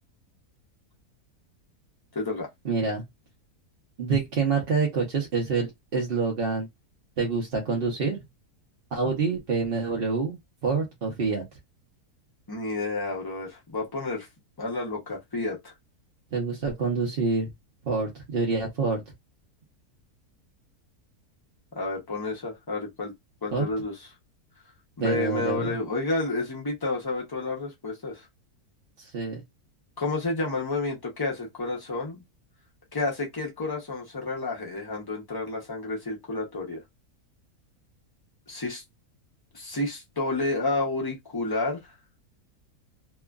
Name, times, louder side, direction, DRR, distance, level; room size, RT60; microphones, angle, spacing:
voice 1, 2.1-2.5 12.5-14.3 14.6-15.7 21.7-23.1 23.4-23.9 25.0-28.2 30.0-32.2 32.9-36.8 38.5-38.8 39.5-41.8, left 3 dB, 25° left, 0.5 m, -30 dB
voice 2, 2.6-3.0 4.0-6.7 7.2-8.2 8.9-11.4 16.3-17.5 17.8-19.0 23.5-23.7 25.0-25.8 29.0-29.4, right 4 dB, 50° right, 0.8 m, -27 dB
2.9 x 2.4 x 2.3 m
omnidirectional pair, 1.7 m